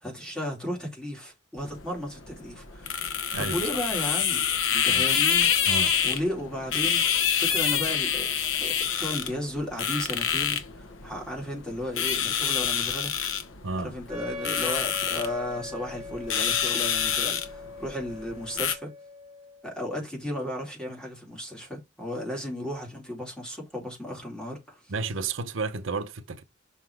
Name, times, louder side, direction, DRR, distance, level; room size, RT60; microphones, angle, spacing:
voice 1, 0.0-2.9 3.4-5.5 6.0-7.1 7.4-8.3 8.6-13.1 13.8-18.9 19.6-24.9, left 1 dB, 5° left, 2.7 m, -34 dB
sound 1, 1.6-18.7, left 8 dB, 80° left, 1.0 m, -27 dB
voice 2, 13.6-14.0 24.9-26.4, right 4 dB, 85° right, 0.8 m, -31 dB
Wind instrument woodwind instrument, 14.1-19.7, left 3 dB, 35° right, 1.0 m, -41 dB
5.9 x 4.0 x 4.6 m
head